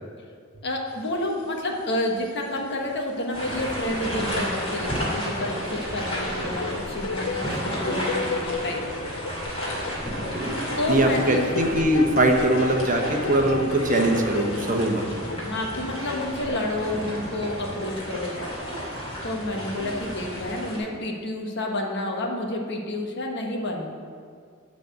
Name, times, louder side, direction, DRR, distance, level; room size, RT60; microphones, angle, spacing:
voice 1, 0.6-8.8 10.8-11.4 15.3-18.5 19.2-24.0, left 1 dB, 55° left, 1 dB, 1.3 m, -29 dB
sound 1, 1.0-1.8 2.2-16.3, left 4 dB, 75° left, 0.5 m, -34 dB
sound 2, 3.3-20.8, equal, 30° left, 2.6 m, -32 dB
voice 2, 10.9-15.0, right 1 dB, 40° right, 2 dB, 1.0 m, -21 dB
11.5 x 4.2 x 7.9 m, 2.1 s
head